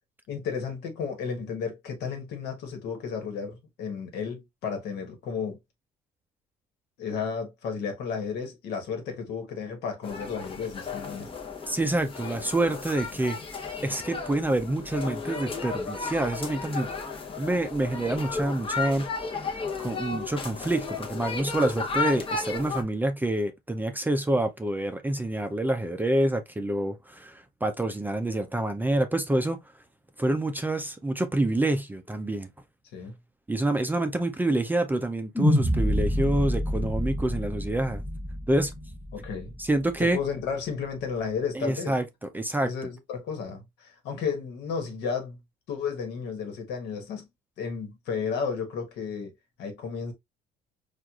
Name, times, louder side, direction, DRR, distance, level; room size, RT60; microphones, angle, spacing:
voice 1, 0.3-5.6 7.0-11.3 32.9-33.1 39.1-39.5 40.0-41.9 42.6-45.4 45.7-47.3 47.6-49.3 49.6-50.1, left 6 dB, 75° left, 1.2 m, -33 dB
sound 1, 10.0-22.8, left 4 dB, 35° left, 0.9 m, -34 dB
voice 2, 11.7-13.4 13.8-16.9 17.4-19.1 19.8-29.6 30.2-32.5 33.5-38.0 38.5-38.7 39.6-40.2 41.5-42.7, right 1 dB, 10° right, 0.4 m, -27 dB
sound 2, 35.3-39.7, left 1 dB, 15° left, 1.2 m, -27 dB
4.4 x 2.4 x 2.3 m
cardioid pair, 110°, 17 cm